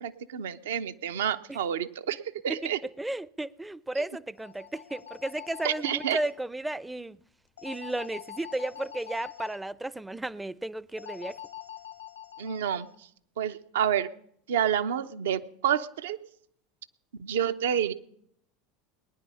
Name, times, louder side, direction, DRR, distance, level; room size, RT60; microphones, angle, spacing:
voice 1, 0.0-2.2 2.4-2.8 5.6-6.2 12.4-12.9 13.4-14.1 14.5-16.2 17.2-17.9, right 9 dB, 75° right, 0.7 m, -28 dB
voice 2, 2.5-7.2 7.6-11.4, right 2 dB, 10° right, 0.5 m, -34 dB
sound 1, 4.3-6.3 7.6-9.6 11.0-13.0, left 11 dB, 85° left, 1.3 m, -45 dB
19.5 x 10.5 x 5.5 m
hypercardioid pair, 80°, 0 cm